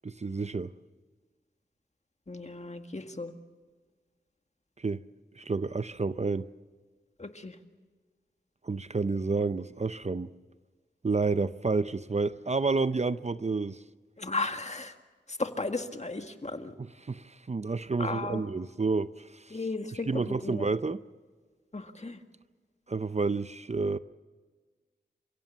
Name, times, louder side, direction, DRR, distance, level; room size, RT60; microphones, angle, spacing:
voice 1, 0.0-0.7 4.8-5.0 5.4-6.4 8.6-10.3 11.0-13.8 16.8-19.7 19.9-21.0 22.9-24.0, right 4 dB, 40° right, 14 dB, 0.6 m, -30 dB
voice 2, 2.3-3.3 7.2-7.6 14.2-14.9 15.4-16.7 18.0-18.4 19.5-20.7 21.7-22.2, left 3 dB, 40° left, 6 dB, 1.8 m, -35 dB
29.5 x 16.5 x 7.3 m, 1.4 s
wide cardioid pair, 50°, 18 cm